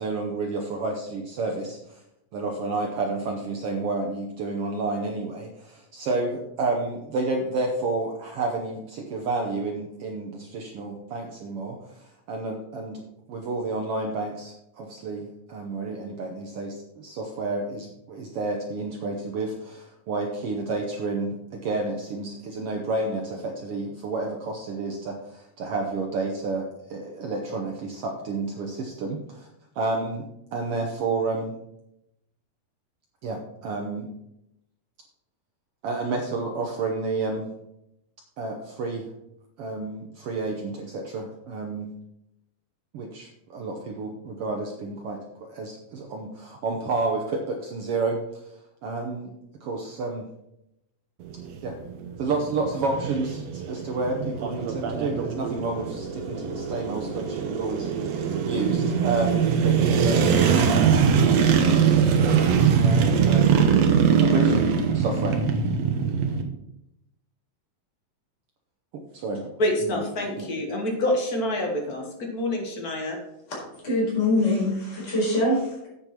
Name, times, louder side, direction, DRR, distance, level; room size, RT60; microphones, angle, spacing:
voice 1, 0.0-2.0 2.3-13.0 13.3-29.5 29.7-30.2 30.5-31.6 33.2-34.1 35.8-37.5 38.4-39.1 39.6-41.9 42.9-48.5 48.8-49.3 49.6-50.3 51.6-51.7 52.2-60.3 61.9-63.8 64.2-65.4 69.1-70.0 70.4-70.5, right 3 dB, 85° right, 2 dB, 1.2 m, -30 dB
sound 1, 51.2-66.4, right 6 dB, 65° right, 1.8 m, -22 dB
voice 2, 69.6-73.2, left 1 dB, 50° left, 2 dB, 1.1 m, -27 dB
voice 3, 73.8-75.9, left 1 dB, 20° left, -5 dB, 4.3 m, -23 dB
8.5 x 7.0 x 5.8 m, 0.84 s
omnidirectional pair, 4.1 m